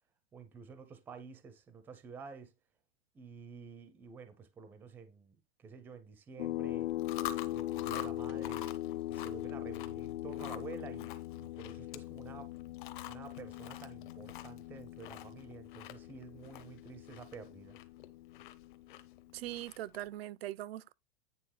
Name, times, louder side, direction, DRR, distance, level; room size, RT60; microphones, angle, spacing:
voice 1, 0.3-2.5 3.1-6.9 7.5-8.6 9.1-12.5 13.0-17.8, right 5 dB, 5° right, 0.4 m, -50 dB
sound 1, 6.4-19.5, left 15 dB, 70° left, 0.7 m, -41 dB
Chewing mastication, 6.9-20.1, left 12 dB, 55° left, 1.0 m, -48 dB
voice 2, 19.3-20.9, right 14 dB, 75° right, 0.5 m, -41 dB
9.4 x 3.6 x 6.3 m
supercardioid pair, 170°, 31 cm